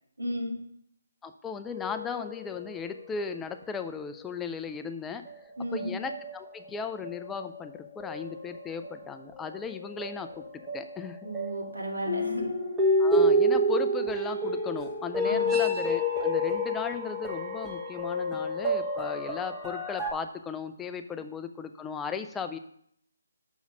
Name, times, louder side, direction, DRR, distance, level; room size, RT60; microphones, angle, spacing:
voice 1, 0.2-0.6 5.6-5.9 11.2-12.5 15.2-15.6, equal, 85° right, 0 dB, 1.9 m, -34 dB
voice 2, 1.2-5.2 5.7-11.2 13.0-22.6, left 6 dB, 10° left, 8 dB, 0.4 m, -36 dB
sound 1, 1.7-3.4 4.0-4.1 5.2-20.1, equal, 10° right, 1.2 m, -30 dB
6.1 x 4.0 x 6.0 m, 0.69 s
figure-of-eight pair, 150°, 0 cm